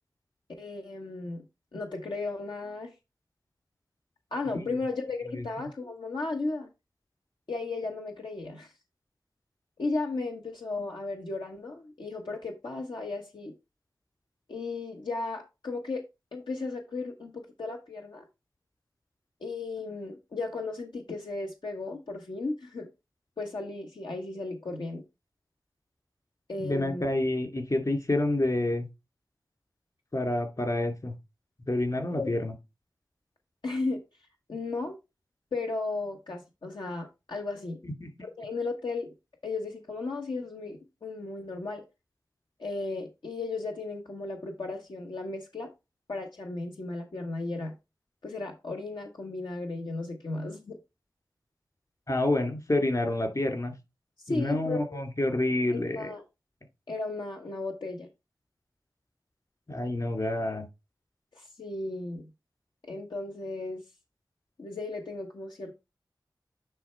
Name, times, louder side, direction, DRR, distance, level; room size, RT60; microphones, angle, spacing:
voice 1, 0.6-1.4 1.7-2.9 4.3-6.7 7.5-8.7 9.8-13.5 14.5-16.0 16.3-18.3 19.4-22.9 23.4-25.0 26.5-27.1 32.1-32.3 33.6-34.0 34.5-35.0 35.5-37.8 38.2-39.1 39.4-41.8 42.6-45.7 46.1-47.7 48.2-50.8 54.2-55.0 55.7-56.2 56.9-58.1 61.3-62.3 62.8-63.8 64.6-65.7, left 3 dB, 85° left, 1.1 m, -35 dB
voice 2, 26.6-28.9 30.1-31.1 31.7-32.5 38.0-38.1 52.1-53.7 54.3-56.1 59.7-60.6, left 1 dB, 50° left, 2.4 m, -28 dB
9.8 x 3.4 x 4.4 m
wide cardioid pair, 50°, 8 cm